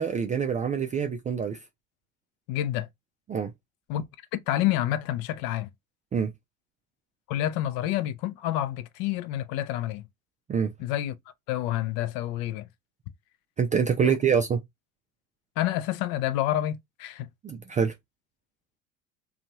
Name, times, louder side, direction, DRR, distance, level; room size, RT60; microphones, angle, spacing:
voice 1, 0.0-1.6 3.3-3.5 6.1-6.3 10.5-10.7 13.6-14.6 17.4-17.9, right 7 dB, 20° right, 0.4 m, -25 dB
voice 2, 2.5-2.9 3.9-4.0 4.3-5.7 7.3-10.0 10.8-11.1 11.5-12.7 14.0-14.2 15.6-17.3, left 13 dB, 55° left, 0.6 m, -28 dB
2.6 x 2.4 x 2.9 m
hypercardioid pair, 75°, 42 cm